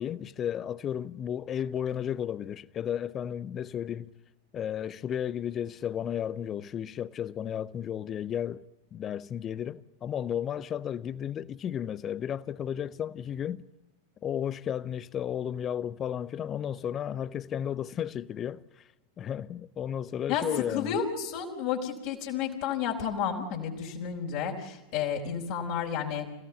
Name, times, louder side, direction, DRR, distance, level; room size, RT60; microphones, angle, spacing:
voice 1, 0.0-4.1 4.5-8.6 8.9-13.6 14.2-18.6 19.2-21.0, left 9 dB, 25° left, 0.8 m, -33 dB
voice 2, 20.7-26.2, left 8 dB, 45° left, 4.2 m, -31 dB
28.0 x 17.0 x 8.3 m
figure-of-eight pair, 90°, 0 cm